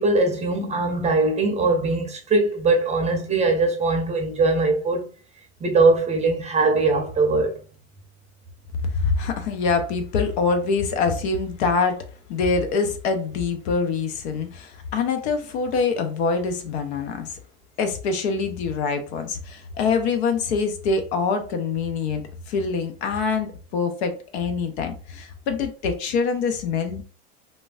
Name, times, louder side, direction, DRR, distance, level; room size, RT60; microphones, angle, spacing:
voice 1, 0.0-5.1 5.6-7.6, right 3 dB, 20° right, 0.6 m, -21 dB
voice 2, 8.8-12.0 12.3-17.4 17.8-27.0, left 4 dB, 75° left, 0.7 m, -25 dB
3.2 x 2.2 x 2.5 m
supercardioid pair, 110°, 33 cm